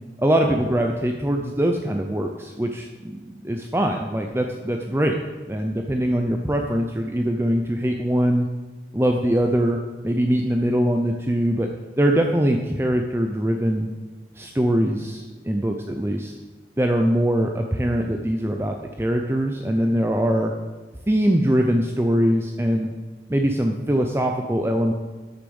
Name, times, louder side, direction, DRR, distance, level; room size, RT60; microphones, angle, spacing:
voice 1, 0.2-5.1 5.5-8.5 8.9-9.8 10.0-11.7 12.0-13.9 14.4-16.3 16.8-20.5 21.1-22.9 23.3-24.9, equal, 15° right, 3 dB, 0.6 m, -22 dB
9.8 x 6.7 x 7.0 m, 1.3 s
head